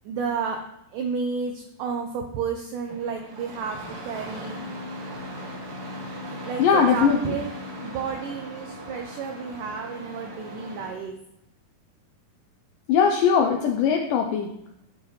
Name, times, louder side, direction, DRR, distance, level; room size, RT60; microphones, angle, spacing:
voice 1, 0.1-0.6 0.9-4.6 6.2-11.1, right 5 dB, 85° right, 4 dB, 1.9 m, -31 dB
Engine starting, 2.9-11.0, equal, 50° right, 2.0 m, -38 dB
voice 2, 6.6-7.3 12.9-14.5, left 6 dB, 80° left, 3 dB, 1.9 m, -20 dB
12.0 x 6.6 x 3.2 m, 0.84 s
omnidirectional pair, 4.6 m